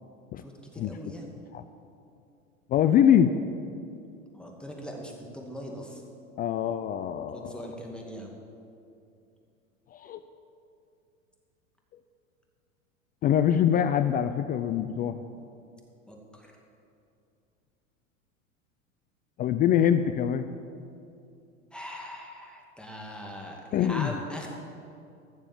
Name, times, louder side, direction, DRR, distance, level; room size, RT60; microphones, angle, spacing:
voice 1, 0.4-1.2 4.3-6.0 7.3-8.3 16.1-16.5 21.7-24.5, equal, ahead, 0 dB, 2.3 m, -40 dB
voice 2, 2.7-3.3 6.4-7.5 9.9-10.2 13.2-15.2 19.4-20.5 23.7-24.1, left 9 dB, 25° left, 10 dB, 0.4 m, -24 dB
15.0 x 7.0 x 7.4 m, 2.5 s
hypercardioid pair, 95°, 40 cm